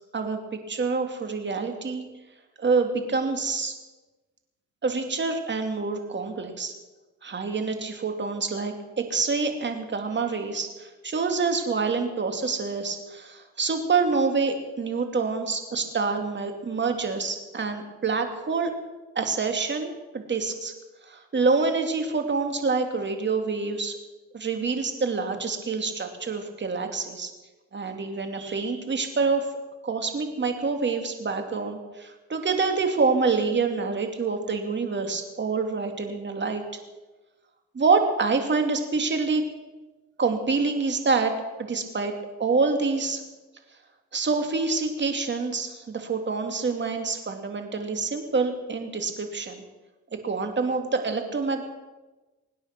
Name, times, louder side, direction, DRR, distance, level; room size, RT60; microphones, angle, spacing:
voice 1, 0.1-2.1 2.6-3.7 4.8-6.7 7.2-18.7 19.1-20.7 21.1-24.0 24.3-27.3 27.7-29.5 29.8-36.6 37.7-39.4 40.2-42.1 42.4-43.2 44.1-49.6 50.2-51.6, right 4 dB, 35° right, 5 dB, 2.8 m, -26 dB
24.5 x 9.7 x 6.1 m, 1.2 s
cardioid pair, 90°, 30 cm